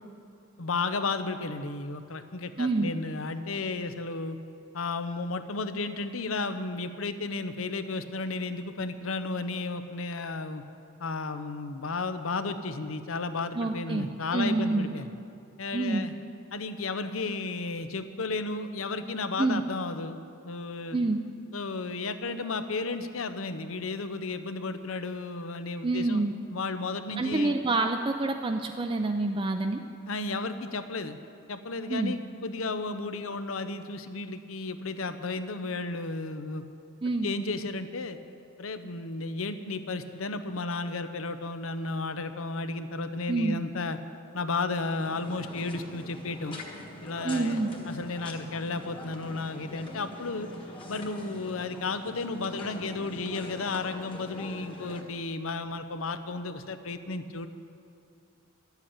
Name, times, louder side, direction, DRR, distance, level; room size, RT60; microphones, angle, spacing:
voice 1, 0.6-4.4 4.7-10.6 11.0-15.1 15.6-16.1 16.5-20.2 20.4-21.0 21.5-27.5 30.1-31.2 31.5-36.6 37.2-38.2 38.6-44.0 44.3-46.6 47.0-50.5 50.9-57.5, left 3 dB, 75° left, 10 dB, 0.8 m, -33 dB
voice 2, 2.6-2.9 13.5-14.1 14.3-14.9 15.7-16.1 19.4-19.6 20.9-21.2 25.8-26.3 27.2-29.8 31.9-32.1 37.0-37.3 43.3-43.6 47.2-47.7, right 2 dB, 25° right, 4 dB, 0.5 m, -27 dB
sound 1, 45.0-55.0, left 1 dB, 25° left, 1.5 m, -44 dB
12.5 x 8.2 x 8.7 m, 2.5 s
head